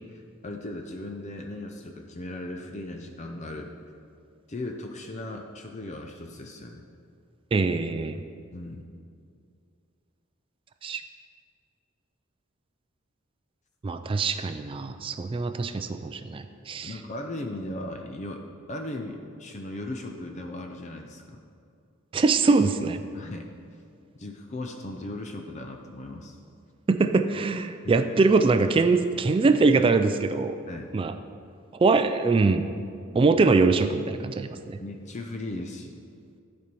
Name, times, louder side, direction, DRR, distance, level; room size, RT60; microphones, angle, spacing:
voice 1, 0.0-3.7 4.5-6.9 8.5-8.9 16.8-18.4 18.7-21.4 23.1-23.5 24.2-26.4 27.8-27.9 30.7-30.9 33.1-33.3 34.5-36.0, left 1 dB, 35° left, 4 dB, 0.5 m, -37 dB
voice 2, 7.5-8.2 10.8-11.0 13.8-16.9 22.1-23.0 26.9-30.6 30.9-31.1 31.7-32.7 33.1-34.8, right 3 dB, 25° right, 9 dB, 0.3 m, -23 dB
11.5 x 4.4 x 5.4 m, 2.3 s
head